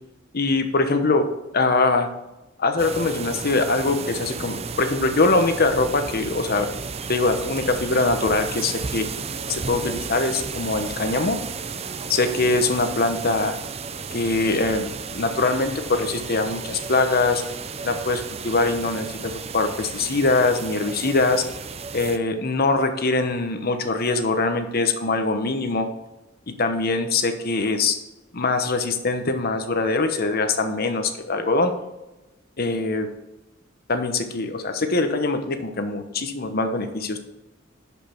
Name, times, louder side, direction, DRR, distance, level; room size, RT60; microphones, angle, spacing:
voice 1, 0.3-1.3 1.5-2.1 2.6-6.7 7.1-9.1 9.5-11.4 12.1-13.5 14.1-17.4 17.8-21.4 21.9-25.9 26.5-28.0 28.3-31.7 32.6-33.1 33.9-37.2, left 3 dB, 50° left, 7 dB, 1.0 m, -23 dB
sound 1, 2.8-22.2, right 5 dB, 30° right, 0.5 m, -33 dB
11.0 x 5.4 x 4.5 m, 0.98 s
head